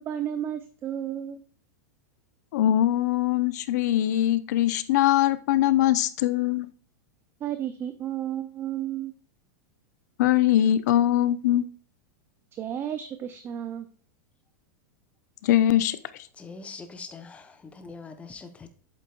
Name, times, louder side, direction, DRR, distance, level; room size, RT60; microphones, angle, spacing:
voice 1, 0.0-1.4 7.4-9.1 12.5-13.9, right 10 dB, 20° right, 10 dB, 0.5 m, -32 dB
voice 2, 2.5-6.7 10.2-11.6 15.4-16.3, left 12 dB, 65° left, 15 dB, 0.7 m, -22 dB
voice 3, 16.4-18.7, left 4 dB, 10° left, 8 dB, 0.9 m, -43 dB
8.4 x 7.4 x 2.4 m, 0.41 s
supercardioid pair, 150°, 10 cm